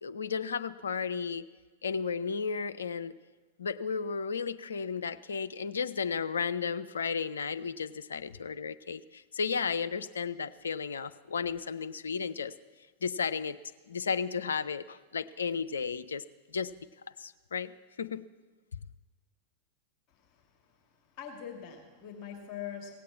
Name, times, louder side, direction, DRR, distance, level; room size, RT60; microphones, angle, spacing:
voice 1, 0.0-1.4 1.8-3.1 3.6-12.5 13.0-13.6 13.9-16.2 16.5-16.9 17.2-17.7 18.0-18.2, left 5 dB, 70° left, 12 dB, 0.5 m, -33 dB
voice 2, 21.1-23.0, left 8 dB, 35° left, 1 dB, 2.2 m, -42 dB
17.0 x 8.5 x 7.4 m, 1.3 s
figure-of-eight pair, 90°, 0 cm